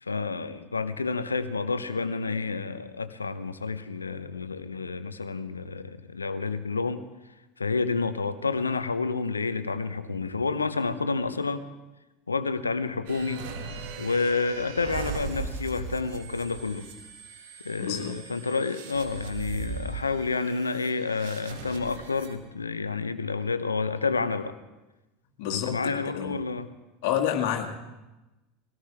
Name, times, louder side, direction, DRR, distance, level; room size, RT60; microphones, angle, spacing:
voice 1, 0.0-7.0 7.6-11.6 12.3-13.4 14.0-16.9 17.6-24.6 25.5-26.7, left 4 dB, 90° left, 12 dB, 0.8 m, -29 dB
sound 1, 13.1-22.3, right 4 dB, 65° right, 1.8 m, -39 dB
voice 2, 17.9-18.2 25.4-26.4 27.0-27.7, left 9 dB, 60° left, 2 dB, 2.1 m, -29 dB
22.5 x 17.5 x 3.5 m, 1.1 s
figure-of-eight pair, 80°, 0 cm